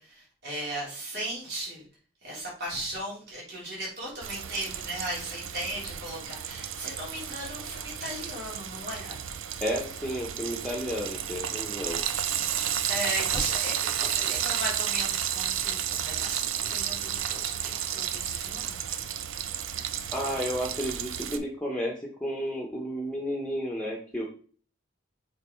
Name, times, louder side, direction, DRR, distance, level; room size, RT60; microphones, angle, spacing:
voice 1, 0.0-1.8 2.2-9.2 12.9-18.8, right 1 dB, 55° right, -4 dB, 3.5 m, -36 dB
Frying (food), 4.2-21.4, right 9 dB, 80° right, 0.6 m, -32 dB
voice 2, 9.6-12.0 20.1-24.3, equal, 5° left, -1 dB, 1.1 m, -32 dB
6.7 x 4.2 x 4.6 m, 0.43 s
head